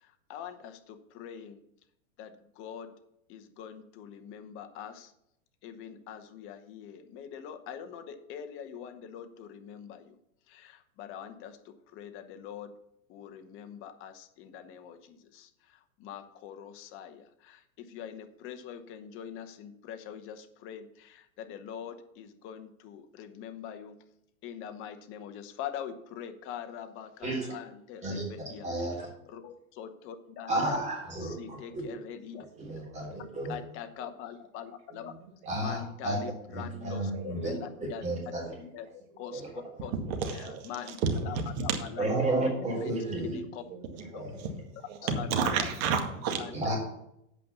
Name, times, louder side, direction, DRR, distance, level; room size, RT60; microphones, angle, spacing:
voice 1, 0.0-1.6 2.2-2.9 3.3-5.1 5.6-10.2 10.5-12.7 13.1-24.0 24.4-28.7 29.3-30.8 31.2-32.5 33.0-33.1 33.5-35.1 35.6-38.0 38.6-38.9 39.2-39.9 40.7-41.7 42.0-42.1 42.6-43.6 44.1-44.2 45.2-45.5 46.4-46.5, left 9 dB, 30° left, 8 dB, 0.9 m, -43 dB
voice 2, 27.2-27.5 28.0-28.2 28.6-29.1 30.5-31.8 32.6-33.6 35.5-36.2 36.5-37.5 37.8-38.5 39.3-39.5 42.0-43.4 44.1-44.5 46.5-46.8, right 2 dB, 15° right, -2 dB, 3.6 m, -32 dB
voice 3, 32.5-33.0 33.4-33.5 34.0-34.1 34.9-35.3 37.1-37.4 39.1-41.8 42.4-42.8 43.1-43.4 43.7-44.5 44.8-46.5, right 5 dB, 45° right, 4 dB, 2.0 m, -33 dB
8.5 x 5.3 x 7.1 m, 0.78 s
hypercardioid pair, 140°, 42 cm